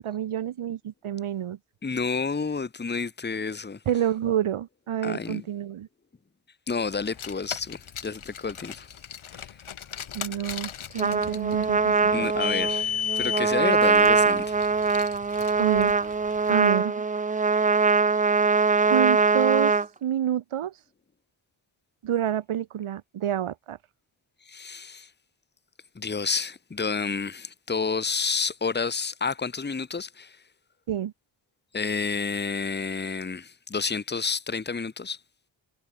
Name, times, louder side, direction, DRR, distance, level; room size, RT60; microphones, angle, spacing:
voice 1, 0.0-1.6 3.9-5.9 10.1-12.3 15.6-16.0 16.5-17.0 18.8-19.7 20.0-20.7 22.0-23.8 30.9-31.1, right 10 dB, 85° right, 2.0 m, -28 dB
voice 2, 1.8-3.8 5.0-5.4 6.7-8.9 9.3-9.5 12.1-14.6 24.5-25.1 25.9-30.4 31.7-35.2, left 5 dB, 20° left, 1.3 m, -30 dB
Car, 7.0-16.5, left 8 dB, 75° left, 7.3 m, -35 dB
Trumpet, 11.0-19.9, right 4 dB, 15° right, 0.5 m, -22 dB
wide cardioid pair, 120°, 49 cm